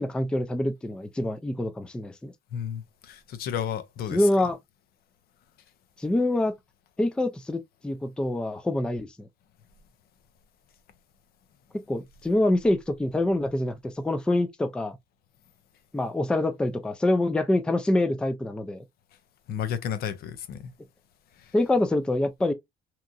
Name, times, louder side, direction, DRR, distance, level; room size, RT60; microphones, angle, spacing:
voice 1, 0.0-2.3 4.1-4.6 6.0-6.5 7.0-9.3 11.9-15.0 15.9-18.8 21.5-22.5, left 1 dB, 5° left, 0.3 m, -25 dB
voice 2, 2.5-4.3 19.5-20.7, left 9 dB, 65° left, 0.5 m, -32 dB
2.9 x 2.5 x 2.3 m
cardioid pair, 110°, 17 cm